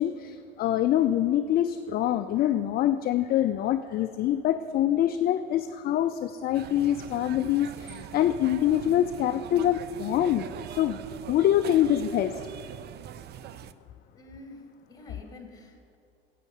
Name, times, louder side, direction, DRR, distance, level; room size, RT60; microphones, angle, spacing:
voice 1, 0.0-11.0 11.3-12.4, left 11 dB, 35° left, 10 dB, 0.4 m, -25 dB
sound 1, 6.5-13.7, right 10 dB, 35° right, 0.5 m, -42 dB
voice 2, 14.2-16.0, left 2 dB, 10° left, 4 dB, 2.0 m, -48 dB
9.6 x 8.5 x 6.4 m, 2.4 s
hypercardioid pair, 80°, 29 cm